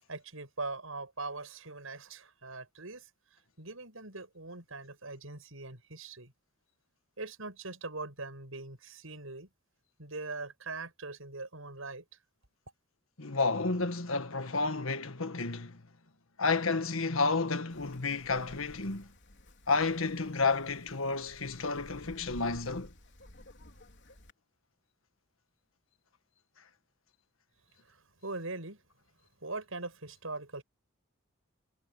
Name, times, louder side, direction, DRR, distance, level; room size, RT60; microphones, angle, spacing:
voice 1, 0.1-3.1 3.6-6.3 7.2-9.5 10.0-12.0 27.9-28.8 29.4-30.6, right 3 dB, 75° right, 6.9 m, -41 dB
voice 2, 13.2-15.8 16.4-19.1 19.7-22.9, left 3 dB, 75° left, 1.6 m, -31 dB
Wind, 17.7-24.3, left 1 dB, 60° left, 3.8 m, -54 dB
head